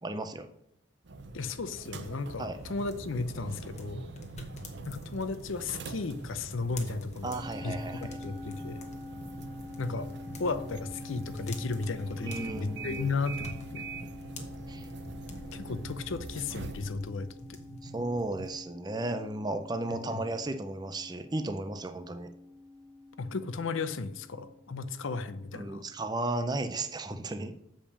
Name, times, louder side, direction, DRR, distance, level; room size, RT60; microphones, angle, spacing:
voice 1, 0.0-0.5 2.4-2.6 7.2-8.2 12.2-13.2 14.7-14.9 17.8-22.3 25.5-27.5, right 2 dB, 20° right, 8 dB, 0.5 m, -34 dB
sound 1, 1.0-16.9, right 4 dB, 55° right, 0.7 m, -45 dB
voice 2, 1.3-4.1 4.9-8.8 9.8-10.1 10.4-13.8 15.5-17.6 19.9-20.2 23.2-25.8, left 4 dB, 75° left, 12 dB, 0.6 m, -35 dB
sound 2, 2.6-18.5, equal, 35° left, 1.1 m, -46 dB
Musical instrument, 7.3-25.8, left 2 dB, 35° right, 1.4 m, -47 dB
7.3 x 5.1 x 7.0 m, 0.78 s
head